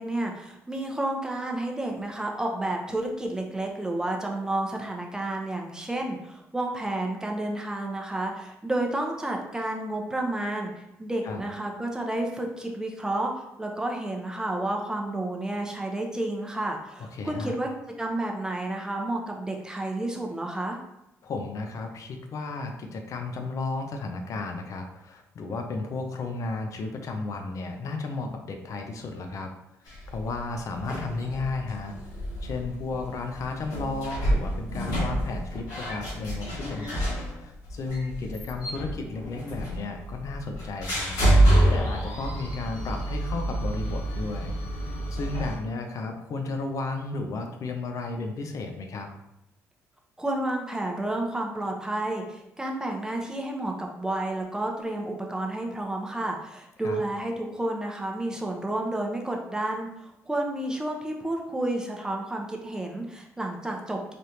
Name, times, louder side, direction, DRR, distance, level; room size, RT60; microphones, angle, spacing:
voice 1, 0.0-10.7 11.0-17.7 18.0-20.8 50.2-64.1, right 1 dB, 10° right, 1 dB, 0.7 m, -31 dB
voice 2, 17.0-17.6 21.2-29.5 30.1-32.0 32.4-37.1 37.4-41.2 41.7-49.1 56.8-57.0, left 3 dB, 60° left, 4 dB, 0.5 m, -33 dB
sound 1, 29.9-45.6, right 1 dB, 90° left, 1.5 m, -28 dB
3.4 x 2.5 x 2.8 m, 0.85 s
supercardioid pair, 75°, 6 cm